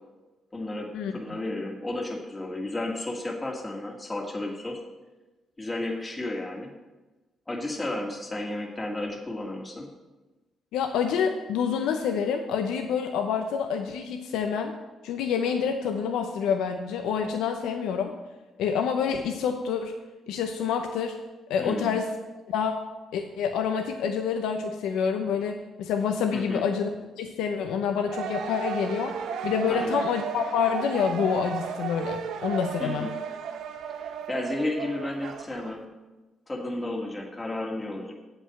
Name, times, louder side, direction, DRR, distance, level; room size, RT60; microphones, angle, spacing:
voice 1, 0.5-4.8 5.6-6.7 7.5-9.9 21.6-22.0 26.3-26.6 29.7-30.0 32.8-33.1 33.9-35.8 36.5-38.1, left 2 dB, 20° left, 0 dB, 1.6 m, -33 dB
voice 2, 10.7-14.7 15.0-18.1 18.6-19.9 20.3-21.2 21.5-22.1 22.5-22.8 23.1-26.9 27.2-29.1 29.4-33.1, left 7 dB, 90° left, 4 dB, 0.7 m, -27 dB
sound 1, 28.0-35.7, right 7 dB, 80° right, 0.7 m, -34 dB
7.9 x 5.7 x 7.5 m, 1.1 s
cardioid pair, 90°, 0 cm